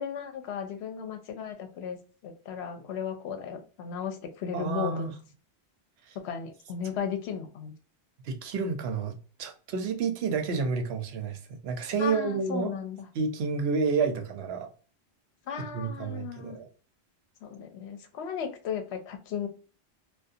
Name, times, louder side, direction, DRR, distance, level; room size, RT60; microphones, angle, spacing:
voice 1, 0.0-2.0 2.2-5.1 6.2-7.7 12.0-13.1 15.5-16.6 17.4-19.5, left 7 dB, 75° left, 0.9 m, -35 dB
voice 2, 4.5-5.1 6.1-6.2 8.2-12.7 13.1-14.7 15.6-16.7, right 5 dB, 75° right, 0.8 m, -30 dB
2.4 x 2.2 x 2.6 m
omnidirectional pair, 1.1 m